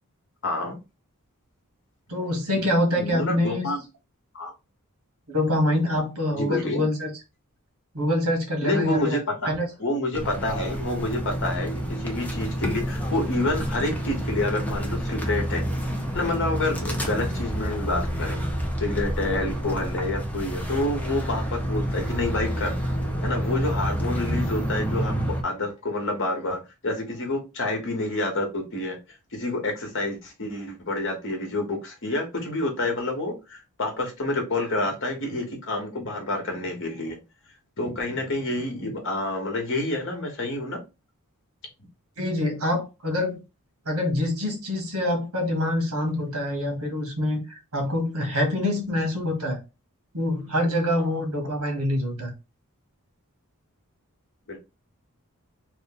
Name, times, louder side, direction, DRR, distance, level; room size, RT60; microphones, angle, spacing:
voice 1, 0.4-0.8 3.0-3.8 4.3-4.5 6.3-6.8 8.6-9.5 9.8-15.6 16.1-18.4 18.8-22.8 23.2-25.1 25.4-29.0 29.3-37.2 37.8-40.8 51.0-51.2 54.5-54.6, left 2 dB, 60° left, 1.3 m, -28 dB
voice 2, 2.1-3.7 5.3-7.1 7.9-9.2 9.4-9.7 24.3-24.4 42.2-43.4 43.8-47.4 47.7-49.6 50.1-52.3, left 1 dB, 75° right, 1.5 m, -25 dB
sound 1, 10.1-25.4, equal, 5° left, 0.7 m, -28 dB
3.3 x 2.5 x 3.9 m
head